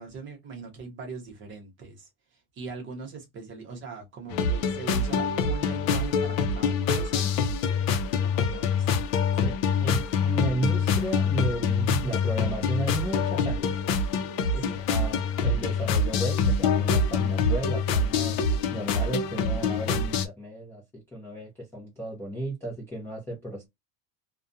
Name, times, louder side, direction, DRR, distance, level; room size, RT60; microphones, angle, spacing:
voice 1, 0.0-7.3 8.3-8.9 14.6-14.8, right 5 dB, 25° right, 0.7 m, -41 dB
sound 1, 4.3-20.3, left 5 dB, 65° left, 0.6 m, -25 dB
voice 2, 9.4-13.7 14.5-18.4 18.7-23.7, right 2 dB, 5° left, 0.4 m, -34 dB
2.4 x 2.2 x 2.5 m
cardioid pair, 160°, 46 cm